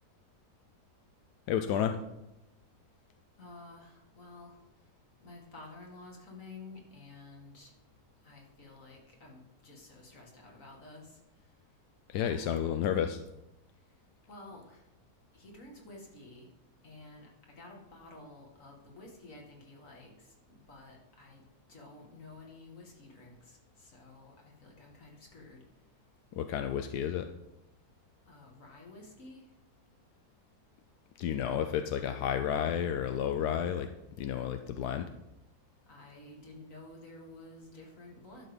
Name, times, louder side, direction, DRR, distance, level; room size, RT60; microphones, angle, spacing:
voice 1, 1.5-2.0 12.1-13.2 26.3-27.3 31.2-33.9 34.2-35.1, left 9 dB, 85° left, 7 dB, 1.2 m, -31 dB
voice 2, 3.4-4.6 5.2-7.7 8.2-11.2 12.2-12.7 14.3-14.9 15.3-16.5 16.8-21.4 21.7-25.6 28.3-29.5 35.9-38.5, left 2 dB, 55° left, 0 dB, 2.4 m, -51 dB
11.5 x 6.5 x 5.2 m, 0.91 s
omnidirectional pair, 1.7 m